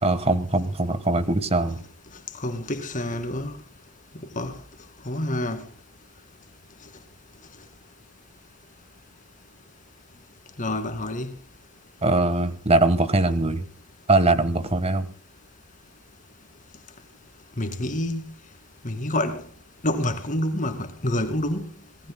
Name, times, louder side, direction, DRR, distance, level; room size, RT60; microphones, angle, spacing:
voice 1, 0.0-1.8 12.0-13.7 14.1-15.1, right 2 dB, 30° right, 1.4 m, -21 dB
voice 2, 2.4-3.5 4.1-4.5 5.1-5.6 10.6-11.3 17.6-18.3 18.8-19.4 19.8-21.8, left 1 dB, 40° left, 2.3 m, -27 dB
26.0 x 19.0 x 2.2 m
head